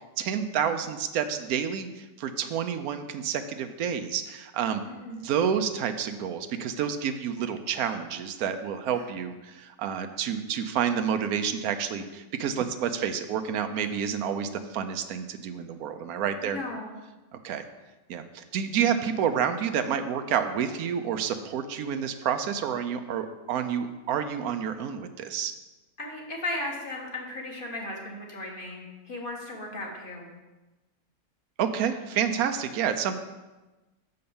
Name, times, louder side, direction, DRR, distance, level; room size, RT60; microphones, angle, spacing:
voice 1, 0.2-4.8 5.1-16.6 17.4-17.6 18.1-25.5 31.6-33.2, right 8 dB, 90° right, 8 dB, 1.1 m, -29 dB
voice 2, 4.9-5.3 16.4-17.0 26.0-30.3, left 2 dB, 35° left, -1 dB, 1.7 m, -36 dB
6.7 x 5.3 x 7.0 m, 1.1 s
omnidirectional pair, 1.5 m